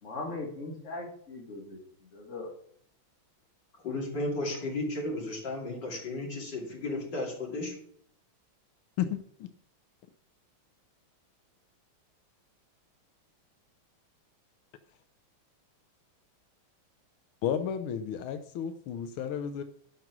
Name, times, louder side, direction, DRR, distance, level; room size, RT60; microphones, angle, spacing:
voice 1, 0.0-2.5, left 2 dB, 35° left, -1 dB, 2.6 m, -40 dB
voice 2, 3.8-7.8, left 2 dB, 55° left, -2 dB, 3.5 m, -34 dB
voice 3, 9.0-9.5 17.4-19.6, left 8 dB, 85° left, 9 dB, 1.5 m, -32 dB
12.0 x 6.0 x 6.0 m, 0.64 s
omnidirectional pair, 2.3 m